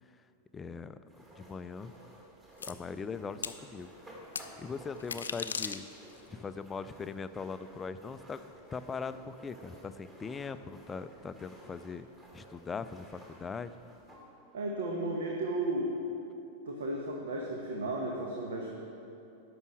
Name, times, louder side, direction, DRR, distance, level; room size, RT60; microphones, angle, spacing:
voice 1, 0.5-1.9 2.7-3.9 4.6-5.8 6.3-8.4 8.7-12.1 12.3-13.7, left 5 dB, 15° left, 12 dB, 0.4 m, -40 dB
sound 1, 1.1-14.3, equal, 20° right, 2.2 m, -55 dB
sound 2, 2.6-2.7 3.4-3.6 4.4-4.5 5.0-6.2, left 6 dB, 70° left, 0.4 m, -37 dB
voice 2, 14.5-15.9 16.7-18.7, right 2 dB, 65° right, 0 dB, 1.1 m, -34 dB
10.5 x 6.2 x 7.5 m, 2.8 s
figure-of-eight pair, 90°, 0 cm